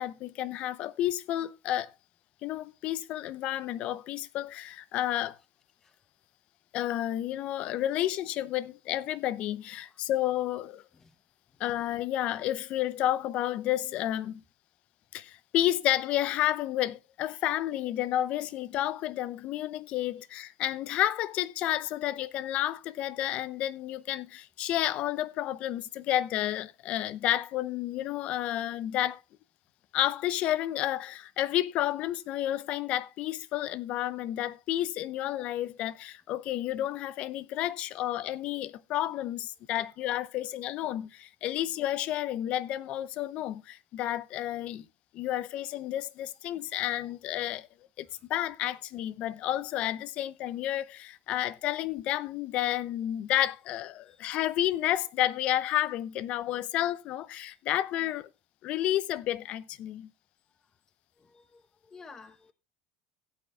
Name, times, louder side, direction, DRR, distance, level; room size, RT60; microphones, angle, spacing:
voice 1, 0.0-1.9 2.4-5.4 6.7-10.8 11.6-14.4 15.1-29.2 29.9-44.9 45.1-47.7 48.0-58.3 58.6-60.1, left 13 dB, 55° left, 0.7 m, -31 dB
voice 2, 61.2-61.6 61.9-62.5, left 4 dB, 20° left, 0.9 m, -51 dB
16.5 x 8.6 x 2.3 m
supercardioid pair, 100°, 2 cm